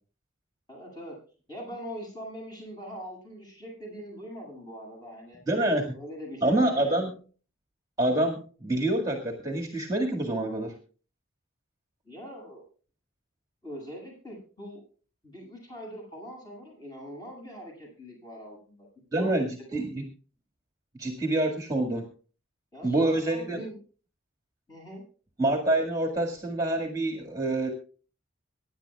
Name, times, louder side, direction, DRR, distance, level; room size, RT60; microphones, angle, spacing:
voice 1, 0.7-1.2 1.5-7.1 12.0-12.6 13.6-14.8 15.2-18.9 19.2-19.3 19.7-19.8 22.7-23.8 24.7-25.0, equal, 20° left, 0 dB, 7.8 m, -42 dB
voice 2, 5.5-6.0 6.4-7.1 8.0-10.7 19.1-19.5 19.7-20.0 21.0-22.1 22.8-23.6 25.4-27.7, right 1 dB, 15° right, 2 dB, 1.9 m, -26 dB
24.0 x 10.5 x 2.4 m, 0.39 s
head